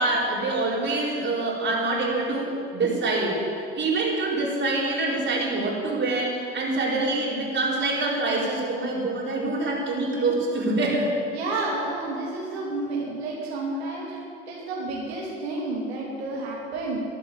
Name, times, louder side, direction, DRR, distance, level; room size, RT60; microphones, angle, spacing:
voice 1, 0.0-11.1, right 2 dB, 35° right, -3 dB, 4.9 m, -25 dB
voice 2, 11.3-14.2 14.5-17.0, right 2 dB, 85° right, -4 dB, 2.8 m, -30 dB
12.5 x 11.5 x 7.8 m, 2.4 s
hypercardioid pair, 70°, 31 cm